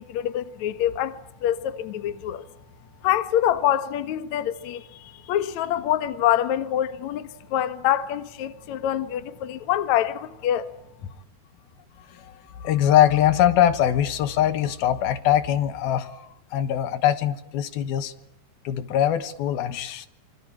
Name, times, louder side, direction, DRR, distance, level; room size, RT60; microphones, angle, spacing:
voice 1, 0.0-2.4 3.0-10.7, left 11 dB, 60° left, 2.3 m, -25 dB
voice 2, 12.0-18.1 18.6-20.1, left 11 dB, 75° left, 3.2 m, -22 dB
27.0 x 25.5 x 8.7 m
omnidirectional pair, 4.4 m